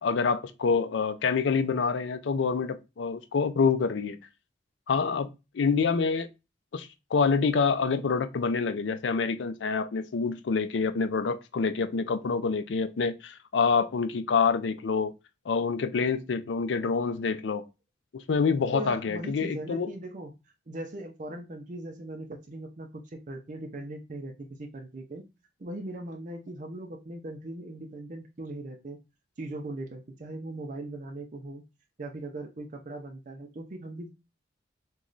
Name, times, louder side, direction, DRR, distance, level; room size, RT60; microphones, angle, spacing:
voice 1, 0.0-4.2 4.9-5.3 5.5-6.3 6.7-15.1 15.5-17.6 18.1-19.9, left 5 dB, 90° left, 0.4 m, -27 dB
voice 2, 18.7-20.3 20.7-25.3 25.6-29.0 29.4-31.6 32.0-34.1, right 2 dB, 45° right, 0.5 m, -39 dB
3.1 x 2.3 x 3.8 m
head